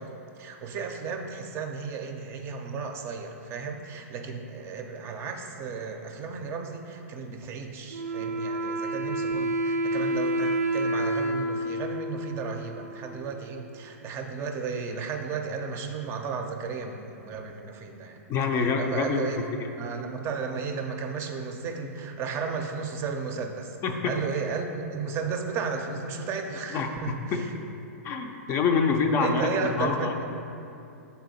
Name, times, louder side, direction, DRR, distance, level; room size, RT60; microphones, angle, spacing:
voice 1, 0.0-18.2 18.6-19.4 19.8-23.8 24.0-27.5 29.2-30.2, right 5 dB, 30° right, 4 dB, 0.5 m, -34 dB
Wind instrument woodwind instrument, 7.9-13.4, right 1 dB, 85° right, 0.5 m, -29 dB
voice 2, 18.3-19.4 23.8-24.1 26.7-27.4 28.0-30.1, left 5 dB, 30° left, 4 dB, 0.5 m, -26 dB
6.2 x 4.1 x 4.1 m, 2.7 s
hypercardioid pair, 115°, 8 cm